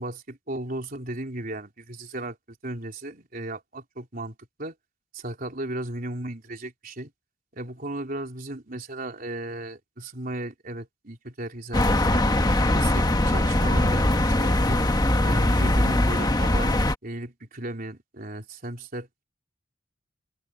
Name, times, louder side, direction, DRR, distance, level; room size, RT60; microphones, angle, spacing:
voice 1, 0.0-2.4 2.6-4.7 5.1-7.1 7.5-12.4 12.7-14.9 15.2-16.7 17.0-19.2, right 1 dB, 45° right, 4.0 m, -35 dB
sound 1, 11.7-17.0, left 1 dB, 20° left, 1.3 m, -21 dB
head